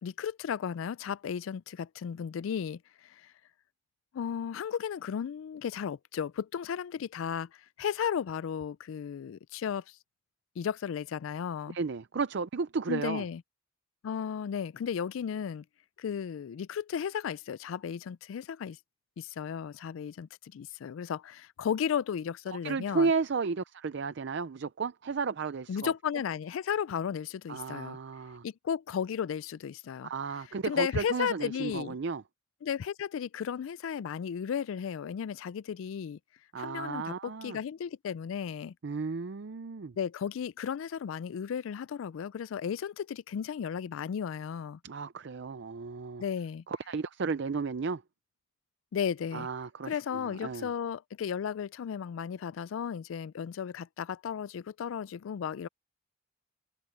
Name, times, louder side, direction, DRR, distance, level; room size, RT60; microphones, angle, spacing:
voice 1, 0.0-3.3 4.1-7.5 7.8-10.0 10.6-11.8 12.9-13.4 14.0-15.6 16.0-18.8 19.2-23.1 25.7-28.0 28.4-30.1 30.6-32.0 32.6-36.2 36.6-38.7 40.0-44.8 46.2-46.6 48.9-49.5 49.8-55.7, left 7 dB, 85° left, 0.3 m, -34 dB
voice 2, 11.7-13.2 22.6-25.9 27.5-28.4 30.0-32.2 36.5-37.6 38.8-39.9 44.8-46.2 46.7-48.0 49.3-50.7, right 4 dB, 60° right, 0.5 m, -33 dB
head